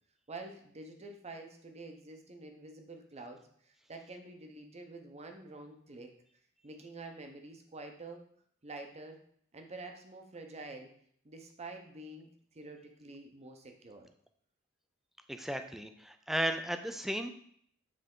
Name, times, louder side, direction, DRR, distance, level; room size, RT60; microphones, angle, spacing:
voice 1, 0.3-6.1 6.6-8.2 8.6-9.2 9.5-10.9 11.2-12.3 12.5-14.1, right 2 dB, 30° right, 4 dB, 0.7 m, -47 dB
voice 2, 15.3-17.3, equal, ahead, 7 dB, 0.4 m, -35 dB
7.6 x 3.4 x 3.7 m, 0.64 s
head